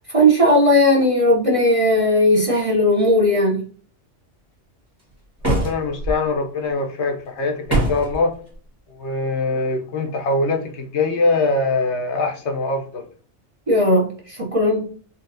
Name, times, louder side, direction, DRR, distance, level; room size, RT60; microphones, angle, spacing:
voice 1, 0.1-3.6 13.7-14.9, left 1 dB, 35° right, 0.6 m, -17 dB
voice 2, 5.4-8.3 8.9-13.1, left 3 dB, 70° left, 0.9 m, -23 dB
sound 1, 5.4-6.1 7.7-8.2, right 1 dB, 20° right, 1.1 m, -21 dB
3.9 x 2.4 x 2.6 m
omnidirectional pair, 1.2 m